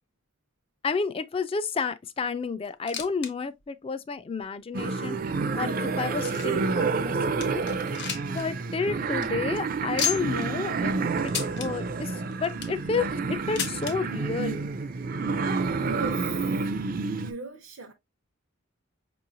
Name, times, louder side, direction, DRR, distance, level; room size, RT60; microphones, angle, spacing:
voice 1, 0.8-5.2 5.5-7.6 8.3-10.9 11.2-11.3 11.6-14.7, left 4 dB, 25° left, 0.3 m, -31 dB
sound 1, 2.6-3.3 3.6-3.7 4.4-4.5 5.2-6.7 7.1-7.2 7.4-8.4 8.7-8.8 9.1-9.3 10.0-10.5 11.3-11.7 12.3-12.8 13.6-13.9 14.9-15.0 15.2-15.3 16.1-16.2, left 8 dB, 55° left, 0.8 m, -32 dB
sound 2, 4.7-17.3, right 4 dB, 45° right, 0.4 m, -29 dB
voice 2, 15.7-16.6 17.0-17.9, right 3 dB, 75° right, 0.7 m, -39 dB
5.3 x 3.0 x 2.5 m
head